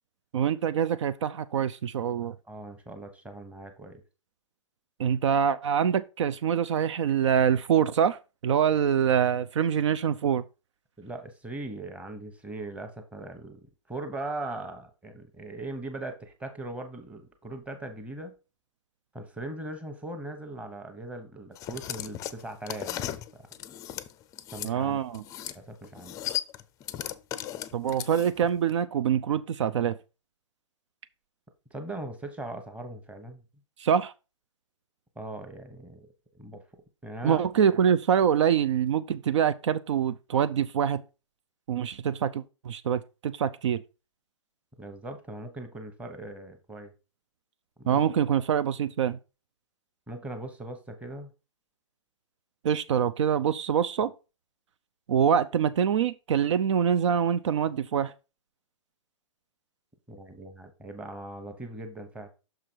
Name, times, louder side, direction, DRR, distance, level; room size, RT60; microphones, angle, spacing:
voice 1, 0.3-2.3 5.0-10.4 24.6-25.2 27.7-30.0 33.8-34.1 37.2-41.0 41.7-43.8 47.9-49.2 52.6-54.1 55.1-58.1, right 8 dB, 65° right, 0.5 m, -25 dB
voice 2, 2.5-4.0 11.0-18.3 19.1-23.4 24.5-25.0 25.5-26.1 31.7-33.4 35.2-36.6 37.0-37.4 44.8-46.9 47.8-48.0 50.1-51.3 60.1-62.3, right 2 dB, 10° right, 1.1 m, -40 dB
sound 1, 21.5-24.7 25.1-25.6 25.8-28.5, left 12 dB, 20° left, 0.5 m, -36 dB
6.2 x 4.9 x 4.5 m
hypercardioid pair, 135°, 16 cm